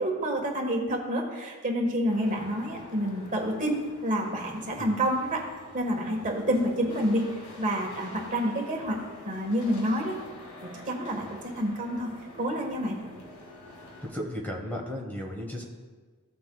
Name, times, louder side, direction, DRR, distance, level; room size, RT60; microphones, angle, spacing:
voice 1, 0.0-5.4 5.7-7.3 7.6-9.0 9.2-13.0, equal, 35° right, 1 dB, 1.5 m, -28 dB
sound 1, 2.1-14.1, left 1 dB, 80° left, 2.0 m, -47 dB
voice 2, 14.0-15.6, equal, 10° left, 0 dB, 1.1 m, -35 dB
15.5 x 7.7 x 2.3 m, 1.5 s
head